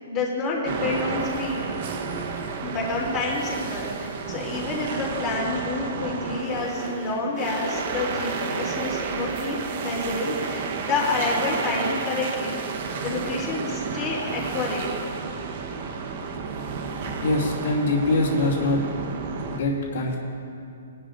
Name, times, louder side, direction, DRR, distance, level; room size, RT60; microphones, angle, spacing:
voice 1, 0.1-1.7 2.6-12.6 13.0-14.9, left 3 dB, 20° left, -4 dB, 3.2 m, -28 dB
sound 1, 0.6-19.6, right 5 dB, 45° right, 1.1 m, -31 dB
voice 2, 17.2-18.8 19.5-20.2, left 2 dB, 65° left, -7 dB, 3.1 m, -23 dB
21.0 x 12.0 x 2.6 m, 2.5 s
hypercardioid pair, 155°, 0 cm